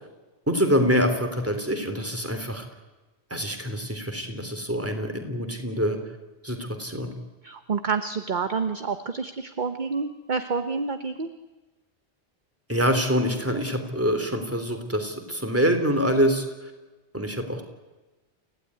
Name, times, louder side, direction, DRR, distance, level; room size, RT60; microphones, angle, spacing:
voice 1, 0.5-2.7 3.3-6.0 6.4-7.1 12.7-16.7 17.1-17.6, equal, 10° right, 6 dB, 3.2 m, -25 dB
voice 2, 7.4-11.3, right 5 dB, 45° right, 9 dB, 1.1 m, -28 dB
29.0 x 16.0 x 9.6 m, 1.2 s
omnidirectional pair, 1.1 m